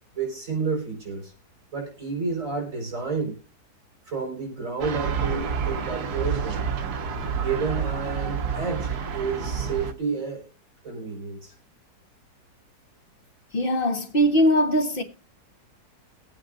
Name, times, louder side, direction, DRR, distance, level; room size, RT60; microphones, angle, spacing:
voice 1, 0.1-1.3 1.7-3.4 4.1-6.7 7.3-10.5 10.8-11.5, right 5 dB, 55° right, 5.3 m, -30 dB
sound 1, 4.8-9.9, right 6 dB, 75° right, 1.5 m, -29 dB
voice 2, 13.5-15.0, equal, 35° left, 1.3 m, -21 dB
21.5 x 8.8 x 2.5 m
omnidirectional pair, 1.7 m